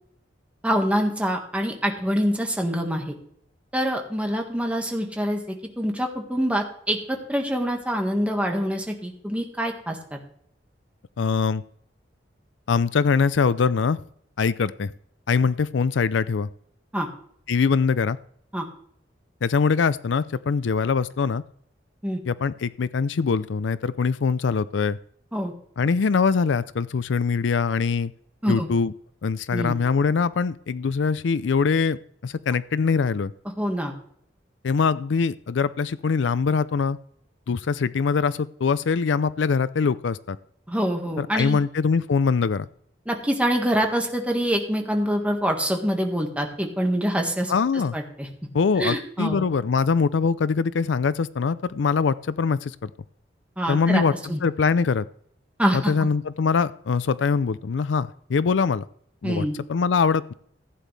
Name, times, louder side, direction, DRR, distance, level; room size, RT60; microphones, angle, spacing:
voice 1, 0.6-3.1 3.7-10.2 16.9-17.1 18.5-18.7 22.0-22.2 25.3-25.5 28.4-28.7 29.5-29.8 33.6-33.9 40.7-41.6 43.1-47.5 47.9-48.3 48.8-49.4 53.6-54.0 54.3-54.4 55.6-56.1 59.2-59.6, equal, 5° right, 2 dB, 1.7 m, -25 dB
voice 2, 11.2-11.6 12.7-14.0 14.4-14.9 15.3-16.5 17.5-18.2 19.4-21.4 22.3-25.0 25.8-28.1 28.5-28.9 29.2-32.0 32.2-33.3 34.6-37.0 37.5-40.4 41.2-42.7 47.5-48.0 48.5-52.9 53.7-54.1 54.4-55.0 55.7-58.8 59.2-60.3, left 5 dB, 80° left, 16 dB, 0.4 m, -23 dB
15.5 x 9.2 x 3.4 m, 0.65 s
head